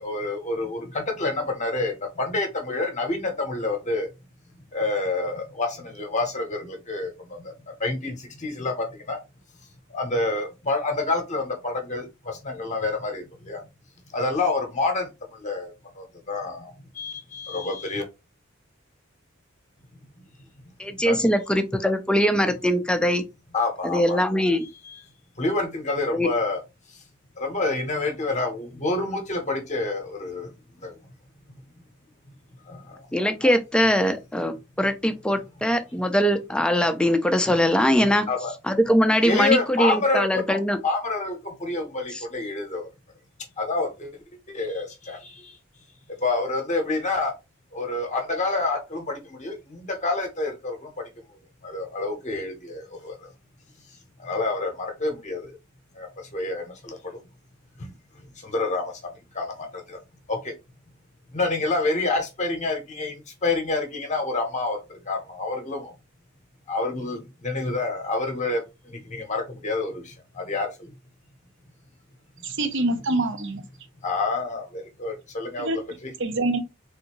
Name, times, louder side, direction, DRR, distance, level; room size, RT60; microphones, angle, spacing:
voice 1, 0.0-4.1 4.7-7.1 7.8-9.2 9.9-13.6 14.1-15.1 15.4-15.7 16.0-18.0 21.0-21.2 23.5-24.2 24.8-24.9 25.4-26.6 27.4-30.5 30.8-30.9 32.7-33.0 37.9-38.0 38.3-38.5 39.2-40.6 40.8-42.9 43.6-44.1 44.5-45.2 46.2-47.3 47.7-50.9 51.6-53.1 54.2-55.5 56.0-56.1 56.3-57.0 58.4-58.9 59.3-59.5 59.9-60.0 60.3-60.5 61.3-63.1 63.4-64.8 65.1-65.9 66.7-68.6 68.9-70.7 72.9-73.0 74.0-76.1, left 3 dB, 35° left, 0.8 m, -28 dB
voice 2, 20.8-23.2 23.8-24.7 26.1-26.3 33.1-38.3 38.7-40.8, equal, 5° left, 0.4 m, -22 dB
voice 3, 72.4-73.6 75.6-75.8 76.2-76.6, right 2 dB, 60° right, 0.7 m, -25 dB
3.6 x 2.6 x 2.9 m
head